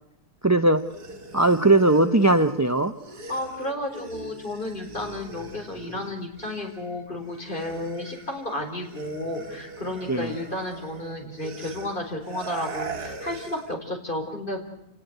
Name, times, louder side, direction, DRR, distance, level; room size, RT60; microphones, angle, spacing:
voice 1, 0.4-0.8 1.3-2.9 10.1-10.3, right 2 dB, 15° right, 9 dB, 0.7 m, -19 dB
sound 1, 0.7-6.9 7.2-13.7, right 4 dB, 90° right, 2.9 m, -41 dB
voice 2, 3.1-14.6, left 1 dB, 30° left, 3 dB, 4.9 m, -32 dB
29.5 x 19.0 x 8.1 m, 0.80 s
omnidirectional pair, 1.6 m